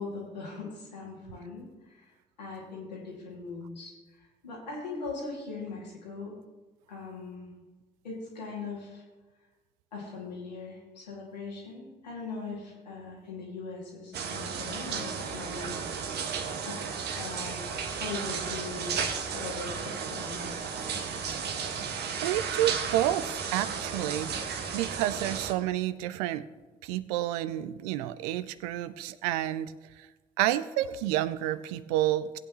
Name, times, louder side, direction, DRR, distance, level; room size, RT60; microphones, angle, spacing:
voice 1, 0.0-2.1 2.4-6.4 6.9-7.5 8.0-9.0 9.9-16.1 16.6-16.8 17.2-17.7 17.9-19.0 19.2-20.7, left 4 dB, 80° left, -4 dB, 2.4 m, -40 dB
sound 1, 14.1-25.5, right 6 dB, 50° right, 1.1 m, -34 dB
voice 2, 22.2-26.4 26.8-30.1 30.4-32.4, right 13 dB, 65° right, 14 dB, 0.5 m, -30 dB
17.5 x 8.7 x 3.1 m, 1.2 s
figure-of-eight pair, 45°, 21 cm